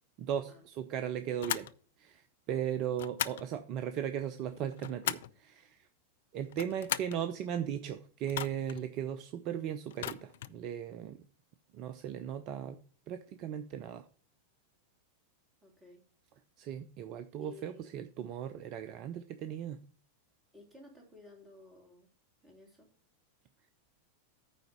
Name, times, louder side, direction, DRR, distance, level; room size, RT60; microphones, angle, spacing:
voice 1, 0.2-1.7 2.0-5.9 6.3-11.3 11.7-12.8 13.1-14.1 16.6-19.8, right 9 dB, 40° right, 11 dB, 0.5 m, -37 dB
sound 1, 1.4-1.7 3.0-3.5 4.5-5.4 6.4-7.2 8.3-8.8 9.9-10.6, left 11 dB, 60° left, 0.4 m, -37 dB
voice 2, 15.6-16.0 17.4-18.0 20.5-22.1 22.4-22.9, left 2 dB, 10° right, 1 dB, 3.1 m, -55 dB
9.3 x 3.9 x 6.9 m, 0.42 s
figure-of-eight pair, 90°, 0 cm